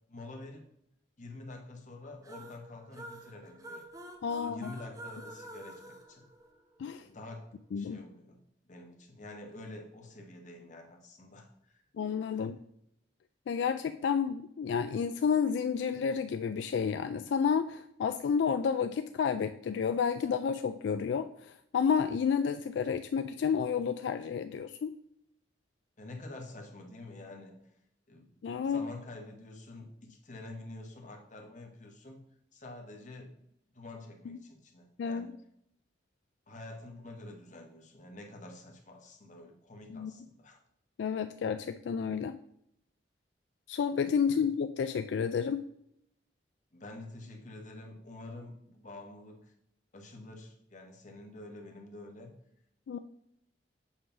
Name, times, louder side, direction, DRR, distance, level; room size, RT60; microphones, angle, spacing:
voice 1, 0.1-0.7 1.2-3.8 4.3-6.2 7.0-8.4 8.7-11.8 12.3-12.5 26.0-27.6 28.1-28.3 28.6-32.2 32.5-33.4 33.7-35.3 36.5-40.6 44.2-44.4 46.7-49.5 49.9-52.3, left 2 dB, 45° left, 2 dB, 1.2 m, -48 dB
sound 1, 2.2-7.0, right 1 dB, 20° right, 0.8 m, -48 dB
voice 2, 4.2-4.7 6.8-7.1 7.7-8.0 12.0-12.6 13.5-24.9 28.4-28.8 34.3-34.4 35.0-35.3 39.9-40.1 41.0-42.4 43.7-45.6 52.9-53.0, left 6 dB, 75° left, 9 dB, 0.3 m, -30 dB
7.4 x 3.2 x 5.7 m, 0.74 s
head